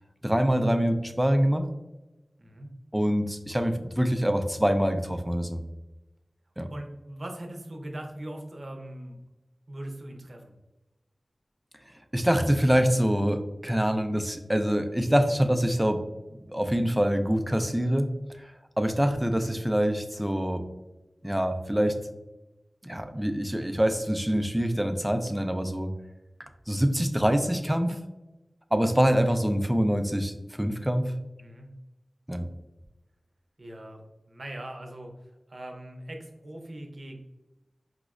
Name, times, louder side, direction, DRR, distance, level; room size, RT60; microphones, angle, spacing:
voice 1, 0.2-1.6 2.9-5.6 6.6-6.7 11.9-16.0 16.3-20.6 21.2-22.0 22.8-25.9 26.4-28.0 28.7-31.1 32.3-32.5, equal, 10° right, 7 dB, 0.3 m, -25 dB
voice 2, 2.4-2.7 6.7-9.2 9.7-10.5 31.4-31.7 33.6-34.0 34.3-37.2, right 1 dB, 55° right, 2 dB, 0.6 m, -40 dB
4.9 x 2.0 x 2.4 m, 1.0 s
wide cardioid pair, 75°, 0 cm